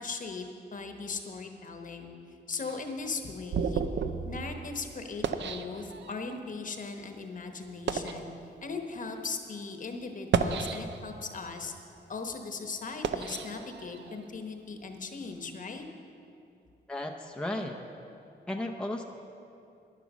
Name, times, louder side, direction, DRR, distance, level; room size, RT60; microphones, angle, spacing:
voice 1, 0.0-2.1 2.5-3.8 4.2-8.3 8.6-11.8 12.1-15.8, left 4 dB, 45° left, 5 dB, 1.1 m, -38 dB
sound 1, 2.6-6.4 7.0-7.2 7.7-8.3 9.0-9.2 10.1-11.2 11.7-14.3, right 6 dB, 75° right, 0.6 m, -33 dB
voice 2, 16.9-17.7 18.5-19.0, left 1 dB, 5° left, 2 dB, 0.6 m, -34 dB
11.0 x 10.5 x 6.1 m, 2.7 s
wide cardioid pair, 120°, 18 cm